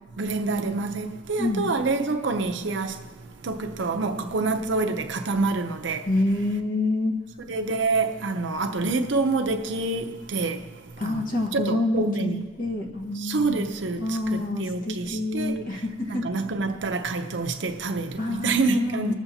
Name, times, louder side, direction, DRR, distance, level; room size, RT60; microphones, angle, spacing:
voice 1, 0.2-2.9 3.4-6.0 7.5-10.6 11.0-11.3 11.5-12.4 13.2-15.6 16.1-19.1, right 3 dB, 70° right, 0.7 m, -27 dB
voice 2, 1.4-1.7 6.0-7.1 11.0-13.7 14.0-16.2 18.2-19.1, left 2 dB, 50° left, 1.3 m, -27 dB
21.0 x 7.1 x 2.7 m
head